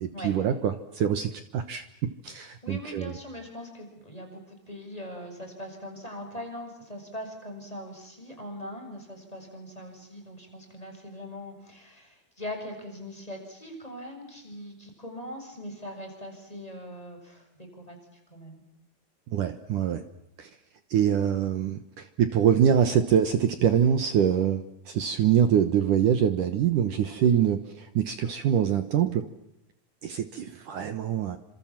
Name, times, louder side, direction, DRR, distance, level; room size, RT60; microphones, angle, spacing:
voice 1, 0.0-3.2 19.3-20.1 20.4-20.5 20.9-29.3 30.0-31.4, right 9 dB, 75° right, 10 dB, 1.9 m, -24 dB
voice 2, 2.3-18.6 27.2-27.3, left 1 dB, 5° left, 3 dB, 6.9 m, -41 dB
29.5 x 27.0 x 7.5 m, 0.83 s
omnidirectional pair, 5.4 m